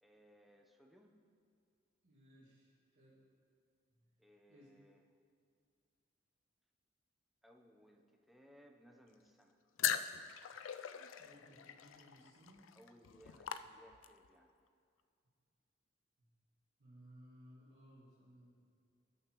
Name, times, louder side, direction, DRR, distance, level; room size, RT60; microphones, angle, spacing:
voice 1, 0.0-1.1 4.2-5.0 7.4-9.6 12.7-14.5, equal, ahead, 1 dB, 0.7 m, -64 dB
voice 2, 2.0-3.2 3.9-4.1 4.5-4.7 11.2-12.7 16.2-16.3 16.8-18.7, equal, 60° right, -11 dB, 2.1 m, -61 dB
sound 1, 9.8-14.3, left 9 dB, 85° left, 0.4 m, -41 dB
18.5 x 6.5 x 3.0 m, 2.3 s
head